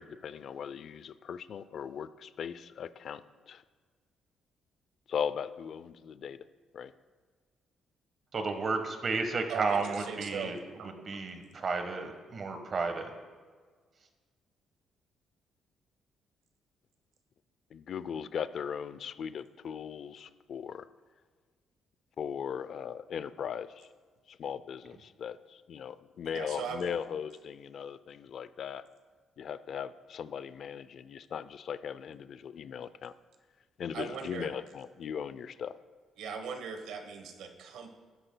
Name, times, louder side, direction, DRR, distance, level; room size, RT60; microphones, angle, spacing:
voice 1, 0.0-3.6 5.1-6.4 6.7-6.9 17.7-20.9 22.2-23.9 24.3-28.9 29.4-33.1 33.8-35.8, left 7 dB, 60° left, 15 dB, 0.4 m, -38 dB
voice 2, 8.3-10.6 11.1-13.1, right 4 dB, 45° right, 6 dB, 1.2 m, -32 dB
voice 3, 9.5-10.5 10.8-11.2 26.2-26.9 33.9-34.5 36.2-37.9, right 6 dB, 85° right, 6 dB, 1.0 m, -39 dB
13.0 x 9.9 x 2.2 m, 1.5 s
cardioid pair, 90°, 0 cm